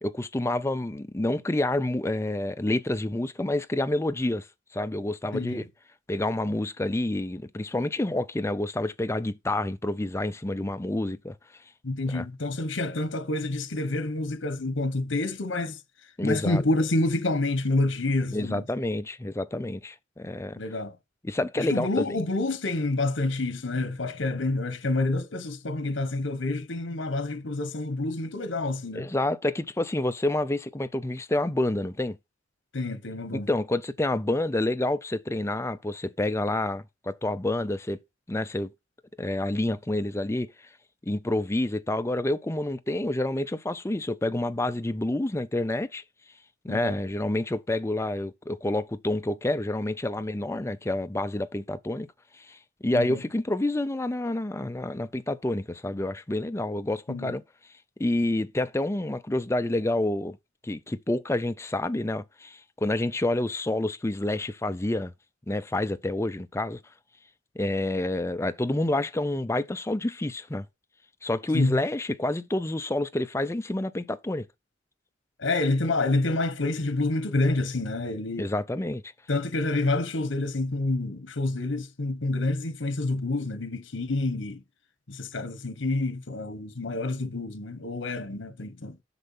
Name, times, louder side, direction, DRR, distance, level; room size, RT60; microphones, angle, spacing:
voice 1, 0.0-4.5 4.7-5.6 6.1-11.4 12.1-12.2 16.2-16.6 18.3-20.6 21.2-22.2 29.0-32.2 33.5-38.0 38.3-38.7 39.2-40.5 41.1-46.0 46.6-52.1 52.4-57.4 58.0-60.4 60.6-65.1 65.5-66.8 67.6-70.7 71.2-74.5 78.4-79.0, left 1 dB, 15° left, 0.5 m, -28 dB
voice 2, 11.8-15.8 16.2-18.6 20.6-21.0 21.6-29.1 32.7-33.5 46.7-47.0 52.9-53.2 57.1-57.3 71.5-71.8 75.4-78.5 79.3-84.6 85.1-89.0, left 2 dB, 80° left, 1.1 m, -28 dB
8.0 x 6.5 x 5.5 m
head